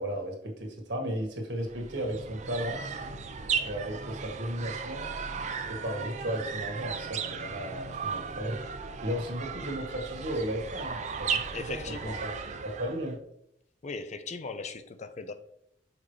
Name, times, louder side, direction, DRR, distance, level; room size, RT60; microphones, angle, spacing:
voice 1, 0.0-2.8 3.6-5.1 5.7-8.6 9.0-12.3 12.6-13.2, right 1 dB, 75° right, 1.7 m, -35 dB
sound 1, 1.6-13.1, right 5 dB, 40° right, 0.5 m, -36 dB
voice 2, 11.5-12.2 13.8-15.3, left 4 dB, 40° left, 0.5 m, -38 dB
5.9 x 5.4 x 3.2 m
head